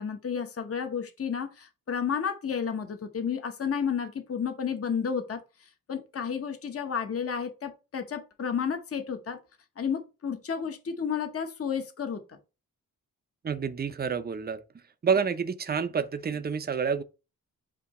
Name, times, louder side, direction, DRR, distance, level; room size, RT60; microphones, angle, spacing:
voice 1, 0.0-5.4 5.9-9.4 9.8-12.4, left 7 dB, 40° left, 0.9 m, -31 dB
voice 2, 13.4-14.6 15.0-17.0, right 6 dB, 30° right, 0.5 m, -28 dB
8.2 x 2.8 x 4.1 m
wide cardioid pair, 165°, 34 cm